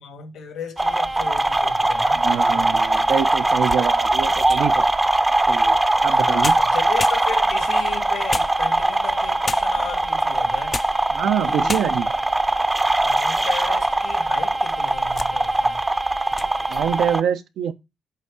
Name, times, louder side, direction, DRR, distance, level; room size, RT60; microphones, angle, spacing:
voice 1, 0.0-2.2 6.1-10.8 11.4-11.9 13.0-15.8, left 7 dB, 80° left, 2.1 m, -35 dB
sound 1, 0.8-17.2, right 2 dB, 15° right, 0.6 m, -21 dB
sound 2, 1.1-1.9 2.5-2.6 3.1-4.8 6.1-6.2 6.4-7.6 8.3-9.0 9.4-9.9 10.5-11.1 11.3-11.4 11.7-12.2 12.8-13.6 13.9-14.0 14.7-15.4 15.7-16.0 16.3-16.5, left 4 dB, 30° left, 0.3 m, -33 dB
voice 2, 2.1-6.5 11.1-12.1 16.7-17.7, right 9 dB, 80° right, 0.8 m, -25 dB
8.2 x 3.6 x 6.0 m
cardioid pair, 105°, 0 cm